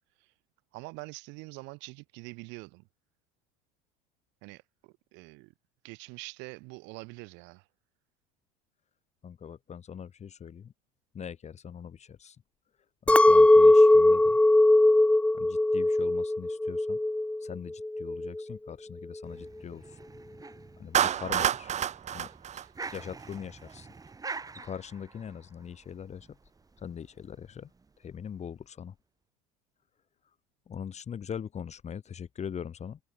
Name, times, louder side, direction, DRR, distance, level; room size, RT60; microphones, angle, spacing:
voice 1, 0.7-2.9 4.4-5.5 5.8-7.7, right 28 dB, 65° right, 4.5 m, -45 dB
voice 2, 9.2-10.7 11.1-12.4 13.0-14.4 15.3-17.0 17.4-20.0 20.8-21.7 22.1-22.3 22.9-23.9 24.6-26.4 26.8-27.7 28.0-28.9 30.7-33.0, left 8 dB, 35° left, 7.9 m, -41 dB
Chink clink, 13.1-17.5 17.8-18.4, left 2 dB, 5° left, 0.9 m, -20 dB
sound 1, 19.2-28.4, right 4 dB, 20° right, 2.8 m, -47 dB
Clapping, 20.9-23.3, right 9 dB, 35° right, 1.1 m, -28 dB
supercardioid pair, 95°, 20 cm